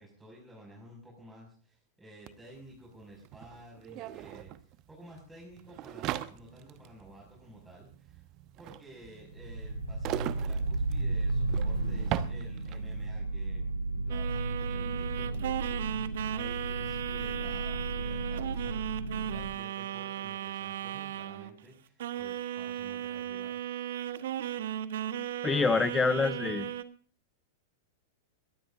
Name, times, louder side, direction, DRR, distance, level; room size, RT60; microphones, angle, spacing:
voice 1, 0.0-8.3 8.6-23.6, right 1 dB, 5° right, -4 dB, 6.0 m, -53 dB
sound 1, 2.3-2.4 2.5-13.0, right 14 dB, 35° right, 1.0 m, -40 dB
sound 2, 9.3-19.5, right 2 dB, 85° right, 1.7 m, -34 dB
sound 3, 14.1-21.6 22.0-26.8, right 11 dB, 55° right, 1.2 m, -36 dB
voice 2, 25.4-26.7, left 4 dB, 15° left, 15 dB, 1.0 m, -26 dB
22.5 x 18.5 x 2.6 m, 0.43 s
figure-of-eight pair, 95°, 0 cm